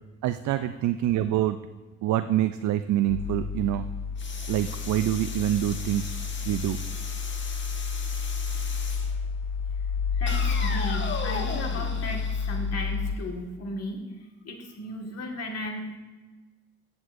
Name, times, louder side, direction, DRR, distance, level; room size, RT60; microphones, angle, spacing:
voice 1, 0.2-1.6 2.0-3.9 4.5-6.2 6.4-6.8, right 12 dB, 70° right, 11 dB, 0.5 m, -26 dB
sound 1, 3.1-13.2, left 5 dB, 85° left, 0.5 m, -30 dB
sound 2, 4.2-9.1 10.3-13.2, left 4 dB, 40° left, 1.3 m, -38 dB
voice 2, 10.2-14.0 14.4-16.0, left 1 dB, 55° left, 2 dB, 1.8 m, -35 dB
14.0 x 8.1 x 2.6 m, 1.2 s
cardioid pair, 90°, 30 cm